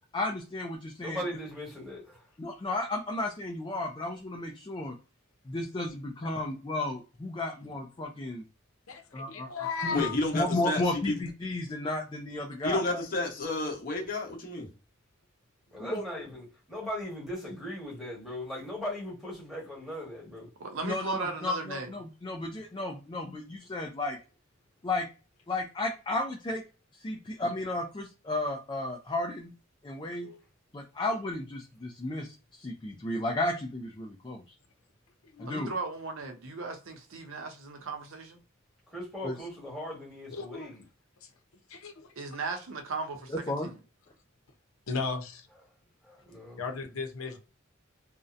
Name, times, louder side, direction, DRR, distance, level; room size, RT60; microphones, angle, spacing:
voice 1, 0.1-1.2 2.4-4.9 5.5-8.4 9.1-9.5 9.8-10.0 10.3-13.0 15.8-16.0 20.8-24.2 24.8-25.1 25.5-26.6 27.0-29.5 29.8-30.3 30.7-34.4 35.4-35.7 39.2-39.3 43.3-43.7, left 2 dB, 20° left, 0.4 m, -33 dB
voice 2, 1.0-2.2 15.7-20.5 38.9-40.8 46.3-46.6, left 1 dB, ahead, 1.3 m, -39 dB
voice 3, 8.9-10.1 30.2-30.4 35.3-35.7 40.3-40.7 41.7-42.1 44.9-45.4 46.6-47.4, left 4 dB, 90° left, 0.7 m, -35 dB
voice 4, 9.9-11.1 12.6-14.7, left 2 dB, 45° left, 0.9 m, -31 dB
voice 5, 20.6-21.9 35.5-38.4 42.2-43.8, right 3 dB, 70° right, 0.6 m, -37 dB
2.7 x 2.0 x 2.5 m
head